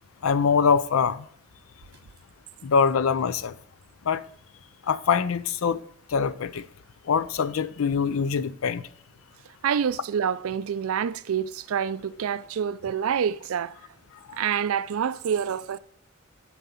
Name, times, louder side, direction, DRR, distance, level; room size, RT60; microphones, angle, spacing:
voice 1, 0.2-1.2 2.6-3.5 4.1-4.2 4.9-5.8 6.1-6.6 7.1-8.8 14.3-14.4, left 6 dB, 85° left, 0.5 m, -23 dB
voice 2, 9.6-13.8 14.4-15.8, right 8 dB, 85° right, 0.4 m, -27 dB
7.6 x 4.6 x 5.5 m
head